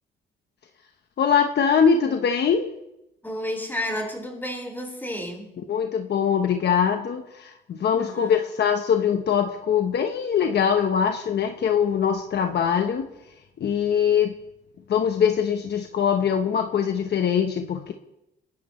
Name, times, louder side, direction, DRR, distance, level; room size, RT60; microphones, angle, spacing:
voice 1, 1.2-2.7 5.7-13.1 13.6-14.3 14.9-17.9, left 7 dB, 60° left, 5 dB, 1.2 m, -22 dB
voice 2, 3.2-5.5 8.0-8.4, left 1 dB, 10° left, -2 dB, 7.1 m, -31 dB
28.0 x 12.0 x 3.3 m, 0.86 s
cardioid pair, 90°, 20 cm